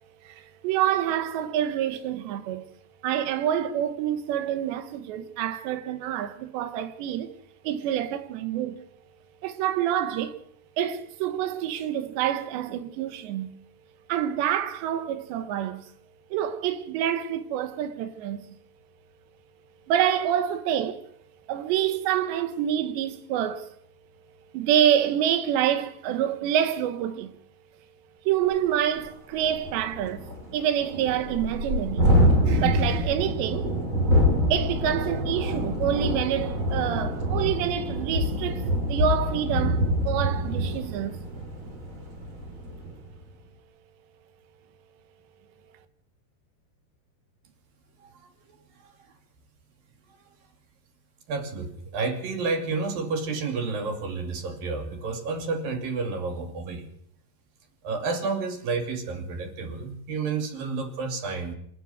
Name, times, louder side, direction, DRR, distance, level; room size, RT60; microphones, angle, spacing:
voice 1, 0.2-2.7 3.0-7.3 7.6-8.8 9.4-10.4 10.8-13.5 14.1-15.9 16.3-18.6 19.9-21.1 21.5-23.7 24.5-27.3 28.3-30.3 30.5-32.1 32.4-33.7 34.5-41.2, right 10 dB, 85° right, 3.5 m, -27 dB
Thunderstorm, 28.5-28.6 29.0-29.1 29.4-43.0, equal, 30° right, 5.8 m, -26 dB
voice 2, 51.3-56.9 57.8-61.5, right 4 dB, 55° right, 4.3 m, -30 dB
27.5 x 10.0 x 9.5 m
omnidirectional pair, 5.0 m